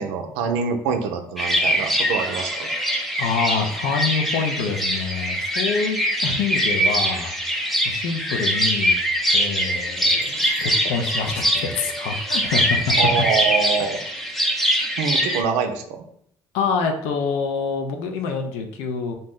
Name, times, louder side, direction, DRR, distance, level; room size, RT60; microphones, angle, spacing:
voice 1, 0.0-2.7 13.0-14.0 15.0-16.0, right 5 dB, 85° right, 6 dB, 0.4 m, -25 dB
sound 1, 1.4-15.4, equal, ahead, 0.5 m, -23 dB
voice 2, 3.2-9.0 9.3-12.9 16.5-19.1, left 5 dB, 85° left, 4 dB, 0.4 m, -26 dB
Bell, 10.0-12.7, right 1 dB, 60° left, 0.8 m, -46 dB
2.6 x 2.0 x 3.6 m, 0.69 s
supercardioid pair, 65°, 11 cm